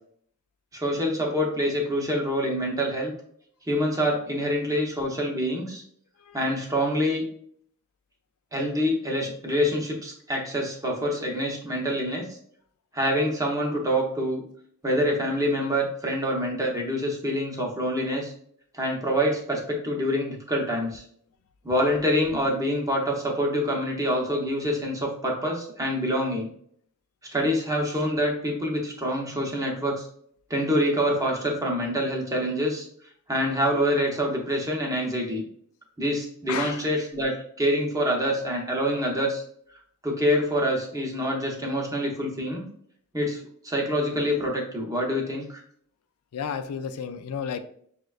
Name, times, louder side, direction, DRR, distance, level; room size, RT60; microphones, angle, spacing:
voice 1, 0.7-3.1 3.7-5.8 6.3-7.2 8.5-12.3 12.9-14.4 14.8-18.3 18.7-21.0 21.6-26.5 27.3-30.1 30.5-32.9 33.3-35.4 36.0-39.4 40.0-42.7 43.1-43.4 43.6-45.6, equal, 15° right, 0 dB, 0.7 m, -26 dB
voice 2, 6.2-6.6 36.5-36.8 46.3-47.6, left 7 dB, 90° left, 10 dB, 0.3 m, -32 dB
6.1 x 2.2 x 2.3 m, 0.63 s
head